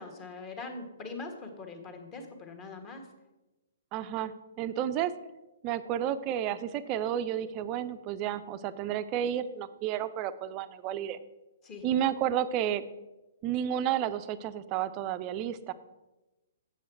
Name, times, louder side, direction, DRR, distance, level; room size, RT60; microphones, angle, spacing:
voice 1, 0.0-3.1 11.6-11.9, left 3 dB, 25° left, 5 dB, 1.4 m, -42 dB
voice 2, 3.9-5.1 5.6-11.2 11.8-12.8 13.4-15.7, right 10 dB, 30° right, 12 dB, 0.5 m, -31 dB
8.3 x 7.0 x 4.6 m, 1.1 s
figure-of-eight pair, 120°, 0 cm